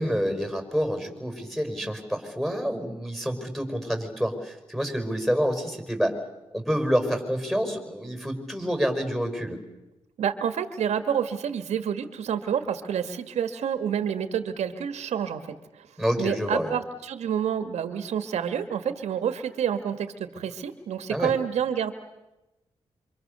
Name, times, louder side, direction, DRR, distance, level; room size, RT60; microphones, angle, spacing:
voice 1, 0.0-6.2 6.5-9.6 16.0-16.7 21.1-21.3, equal, ahead, 6 dB, 5.6 m, -28 dB
voice 2, 10.2-15.4 15.7-15.9 16.2-21.9, right 8 dB, 85° right, 10 dB, 1.8 m, -28 dB
27.0 x 26.0 x 6.8 m, 0.98 s
cardioid pair, 90°, 11 cm